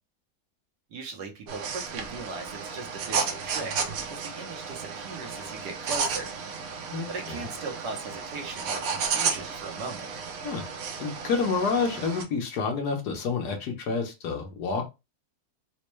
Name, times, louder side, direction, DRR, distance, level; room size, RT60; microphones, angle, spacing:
voice 1, 0.9-3.7 4.1-6.3 7.1-10.1, right 4 dB, 85° right, 2 dB, 1.5 m, -38 dB
sound 1, 1.5-12.2, right 5 dB, 65° right, 1.1 m, -33 dB
voice 2, 6.9-7.4 10.4-10.6 11.0-14.8, left 4 dB, 75° left, 3 dB, 1.5 m, -29 dB
4.2 x 2.2 x 3.0 m, 0.25 s
omnidirectional pair, 1.7 m